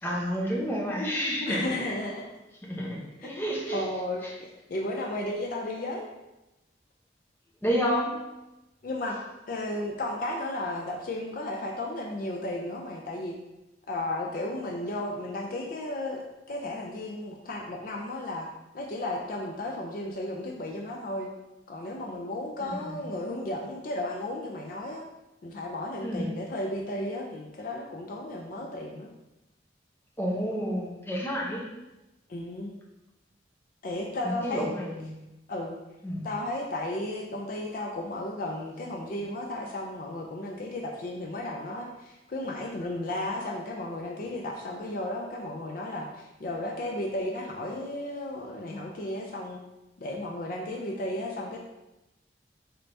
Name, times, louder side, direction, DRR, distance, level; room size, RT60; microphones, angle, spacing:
voice 1, 0.0-1.9 2.7-3.0 3.2-3.9 4.2-4.3 7.6-8.1 22.7-23.0 26.0-26.4 30.2-31.7 34.2-35.2 36.0-36.3, equal, 10° left, -3 dB, 0.6 m, -30 dB
voice 2, 1.5-2.2 3.2-3.3 3.7-6.1 8.8-9.2 9.5-13.4 13.9-18.5 18.7-21.3 21.7-25.0 25.4-29.1 32.3-32.7 33.8-34.7 35.5-35.8 36.2-49.6 50.0-51.6, left 1 dB, 50° left, 0 dB, 0.4 m, -34 dB
4.3 x 3.3 x 2.6 m, 0.98 s
head